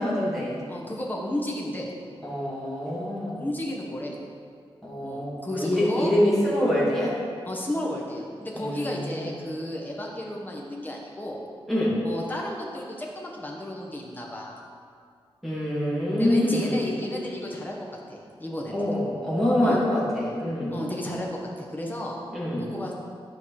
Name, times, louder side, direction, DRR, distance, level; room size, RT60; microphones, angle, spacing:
voice 1, 0.0-0.6 2.2-3.4 4.8-7.1 8.5-9.3 11.7-11.9 15.4-16.9 18.7-20.7 22.3-22.6, left 1 dB, ahead, -9 dB, 2.5 m, -25 dB
voice 2, 0.7-1.9 3.3-4.1 5.0-6.1 7.5-11.4 12.0-14.6 16.2-17.7 18.1-18.9 19.6-19.8 20.7-21.3 21.6-22.2 22.6-22.9, left 1 dB, 15° left, -2 dB, 1.2 m, -33 dB
11.0 x 5.2 x 4.8 m, 2.2 s
wide cardioid pair, 160°, 10 cm